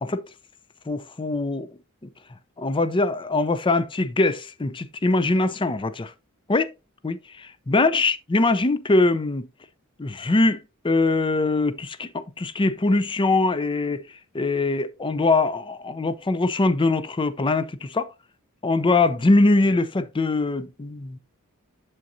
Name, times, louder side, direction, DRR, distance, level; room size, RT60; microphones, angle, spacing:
voice 1, 0.9-1.7 2.6-6.1 6.5-6.7 7.0-9.5 10.0-10.6 10.8-14.0 14.3-18.1 18.6-21.2, left 2 dB, 20° left, 0.5 m, -22 dB
7.7 x 7.1 x 2.6 m
head